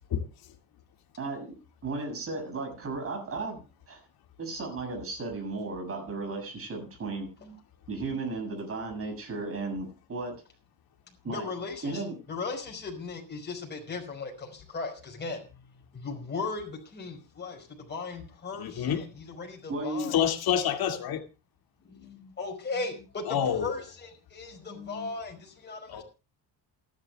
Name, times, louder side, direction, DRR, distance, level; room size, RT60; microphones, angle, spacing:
voice 1, 1.2-4.0 4.4-7.3 7.9-10.4 11.2-11.5 11.8-12.2 19.7-20.1, right 3 dB, 30° right, 7.5 m, -35 dB
voice 2, 11.3-12.0 12.3-15.4 15.9-20.2 21.9-26.0, left 4 dB, 25° left, 5.2 m, -37 dB
voice 3, 18.5-19.0 20.1-21.2 23.2-23.7 25.9-26.0, left 9 dB, 55° left, 2.3 m, -27 dB
28.5 x 11.5 x 2.3 m
cardioid pair, 175°, 43 cm